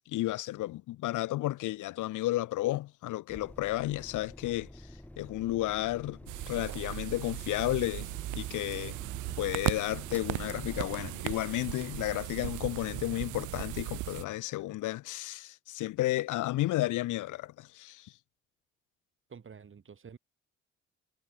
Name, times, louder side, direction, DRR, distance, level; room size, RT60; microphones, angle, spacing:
voice 1, 0.0-4.7 5.2-6.2 6.5-9.0 9.4-18.1, left 16 dB, 80° left, 0.9 m, -32 dB
sound 1, 3.3-11.3, left 1 dB, 5° left, 2.8 m, -49 dB
sound 2, 6.3-14.2, right 19 dB, 80° right, 0.5 m, -37 dB
voice 2, 19.3-20.2, right 6 dB, 40° right, 4.5 m, -49 dB
cardioid pair, 90°, 30 cm